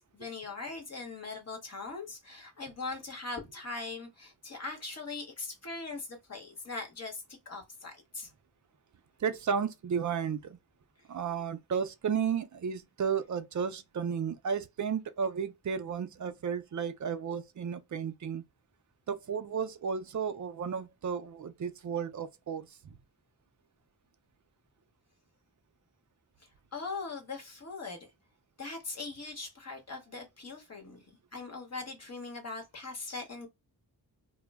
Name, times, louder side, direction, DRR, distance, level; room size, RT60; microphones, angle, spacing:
voice 1, 0.1-8.3 26.7-28.0 28.6-31.0 31.3-33.5, left 3 dB, 40° left, 1.1 m, -40 dB
voice 2, 9.2-10.6 11.1-18.4 19.1-23.0, right 7 dB, 50° right, 0.5 m, -33 dB
2.2 x 2.1 x 3.4 m
wide cardioid pair, 130°, 38 cm